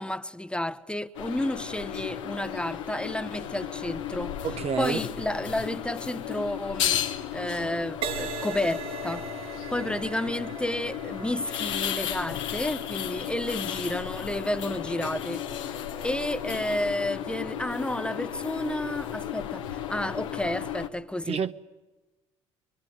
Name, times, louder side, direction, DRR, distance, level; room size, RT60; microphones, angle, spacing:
voice 1, 0.0-4.4 4.8-9.2 9.7-21.4, left 1 dB, 5° left, 1.2 m, -31 dB
sound 1, 1.1-20.9, left 10 dB, 70° left, 1.7 m, -34 dB
voice 2, 4.4-5.0 21.3-21.5, right 7 dB, 40° right, 1.1 m, -28 dB
Crash cymbal, 8.0-15.7 16.3-16.6, right 5 dB, 65° right, 3.1 m, -40 dB
24.5 x 24.0 x 9.9 m
figure-of-eight pair, 55°, 16 cm